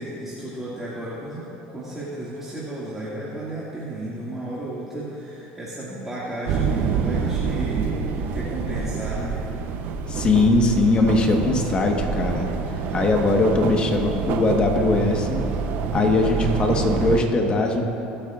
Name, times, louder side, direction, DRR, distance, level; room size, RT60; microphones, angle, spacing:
voice 1, 0.0-9.4, right 1 dB, 10° right, -9 dB, 2.1 m, -33 dB
sound 1, 6.5-17.2, right 6 dB, 60° right, 0.7 m, -27 dB
voice 2, 10.1-15.5 15.9-17.8, left 2 dB, 30° left, 2 dB, 1.3 m, -21 dB
24.0 x 8.8 x 2.5 m, 3.0 s
supercardioid pair, 125°, 4 cm